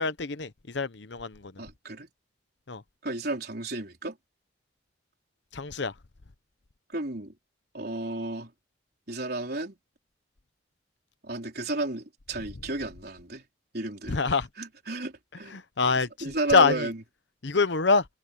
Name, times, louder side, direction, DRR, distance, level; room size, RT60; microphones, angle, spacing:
voice 1, 0.0-1.5 2.7-2.8 5.5-5.9 14.1-14.5 15.5-16.9 17.4-18.0, left 4 dB, 65° left, 0.9 m, -25 dB
voice 2, 1.6-2.1 3.0-4.2 6.9-7.3 7.7-8.5 9.1-9.8 11.2-13.4 13.7-14.2 14.6-15.9 16.2-17.0, right 2 dB, 55° right, 4.3 m, -33 dB
head